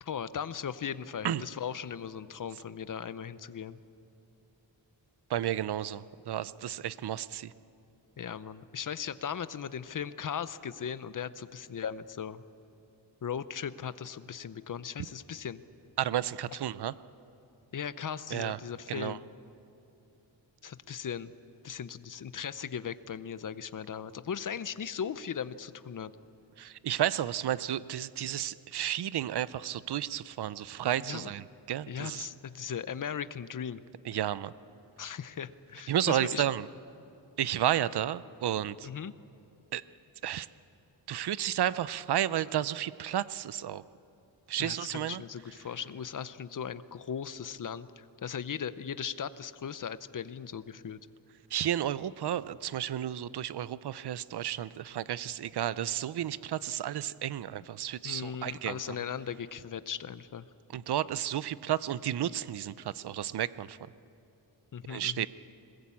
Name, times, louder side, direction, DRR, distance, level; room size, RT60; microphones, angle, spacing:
voice 1, 0.0-3.8 8.2-12.4 13.2-15.6 17.7-19.2 20.6-21.3 21.6-26.1 31.0-31.3 31.9-33.8 35.0-36.4 38.8-39.1 44.6-51.0 57.5-57.6 58.0-60.5 64.7-65.3, left 7 dB, 45° left, 14 dB, 0.7 m, -38 dB
voice 2, 5.3-7.5 16.0-16.9 18.3-18.6 18.9-19.2 26.6-32.3 34.1-34.5 35.9-36.7 37.4-38.9 39.7-39.8 40.2-40.5 41.1-43.8 44.5-45.2 51.5-58.8 60.7-63.8 64.9-65.3, right 11 dB, 60° right, 17 dB, 0.6 m, -32 dB
21.5 x 20.5 x 8.5 m, 2.8 s
wide cardioid pair, 160°, 46 cm